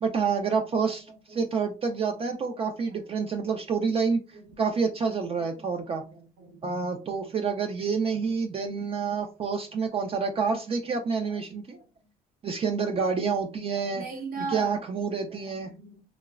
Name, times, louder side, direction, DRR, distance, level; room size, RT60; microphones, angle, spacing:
voice 1, 0.0-6.0 6.6-11.8 12.4-14.0 14.4-15.7, right 5 dB, 35° right, 0.4 m, -28 dB
voice 2, 0.7-1.4 2.1-2.3 2.6-3.4 4.3-4.8 5.4-6.7 8.0-9.0 11.2-11.4 11.7-11.8 13.4-14.8 15.3-16.0, right 4 dB, 60° right, 0.8 m, -42 dB
3.0 x 2.0 x 2.3 m
cardioid pair, 110°, 17 cm